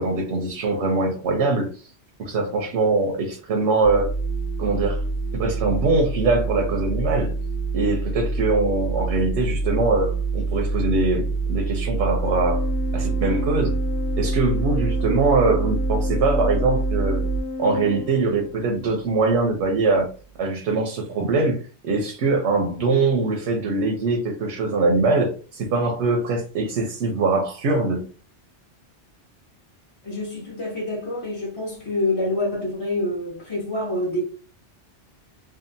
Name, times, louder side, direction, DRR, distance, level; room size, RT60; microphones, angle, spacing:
voice 1, 0.0-1.9 2.2-4.1 4.6-5.0 5.3-7.4 7.7-12.7 12.9-13.8 14.2-17.2 17.6-20.1 20.4-21.6 21.8-28.0, right 3 dB, 90° right, 0.9 m, -22 dB
sound 1, 3.8-17.4, right 3 dB, 65° left, 0.7 m, -26 dB
Organ, 12.2-18.8, left 3 dB, 90° left, 1.0 m, -32 dB
voice 2, 30.0-34.2, left 1 dB, 35° left, 0.5 m, -26 dB
2.7 x 2.3 x 2.5 m
omnidirectional pair, 1.1 m